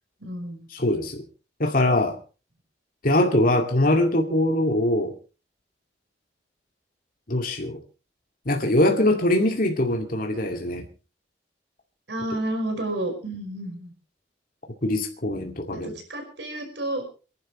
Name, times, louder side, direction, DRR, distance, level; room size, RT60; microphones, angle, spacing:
voice 1, 0.2-0.7 12.1-13.9 15.7-17.1, right 1 dB, 80° right, 5.3 m, -31 dB
voice 2, 0.7-1.2 1.6-2.2 3.0-5.1 7.3-7.8 8.5-10.8 14.8-15.9, left 1 dB, 50° left, 2.3 m, -22 dB
28.0 x 11.5 x 3.2 m
head